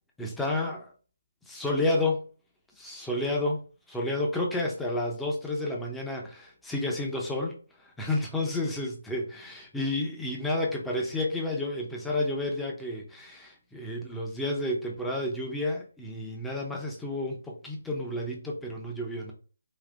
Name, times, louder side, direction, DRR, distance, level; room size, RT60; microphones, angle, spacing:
voice 1, 0.2-0.9 1.5-2.2 2.8-3.6 3.9-19.3, left 2 dB, 5° left, -1 dB, 0.6 m, -31 dB
5.0 x 2.6 x 2.5 m, 0.37 s
hypercardioid pair, 165°, 0 cm